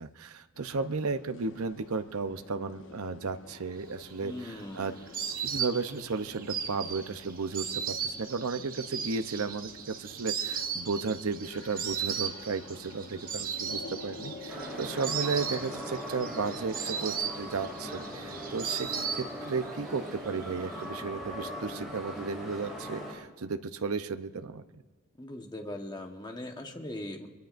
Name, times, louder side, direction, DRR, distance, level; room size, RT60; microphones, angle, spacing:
voice 1, 0.0-4.9 5.4-18.9 19.2-24.6, right 4 dB, 75° right, 10 dB, 0.7 m, -34 dB
sound 1, 0.5-19.5, left 3 dB, 60° left, 1.0 m, -49 dB
Insect, 4.0-19.7 20.0-20.8, right 7 dB, 40° right, 1.0 m, -36 dB
voice 2, 4.2-4.9 25.2-27.3, left 1 dB, 20° left, 4 dB, 1.2 m, -40 dB
sound 2, 14.5-23.1, equal, ahead, 5.3 m, -40 dB
25.5 x 22.5 x 2.6 m, 1.4 s
head